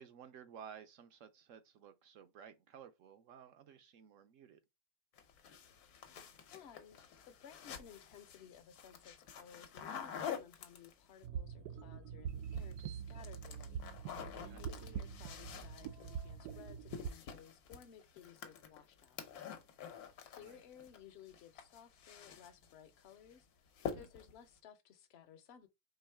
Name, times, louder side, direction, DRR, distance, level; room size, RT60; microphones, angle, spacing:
voice 1, 0.0-4.6 14.4-14.6 20.4-20.6 23.9-24.1, right 8 dB, 65° right, 0.9 m, -55 dB
sound 1, 5.2-11.2 12.3-12.8 13.1-21.0 21.3-22.7 23.1-23.4 23.8-24.4, left 7 dB, 75° left, 1.3 m, -48 dB
voice 2, 6.5-14.1 14.4-19.2 20.2-25.7, left 9 dB, 55° left, 0.8 m, -58 dB
sound 2, 11.2-17.1, right 7 dB, 85° right, 1.1 m, -44 dB
4.6 x 3.5 x 3.2 m
omnidirectional pair, 1.6 m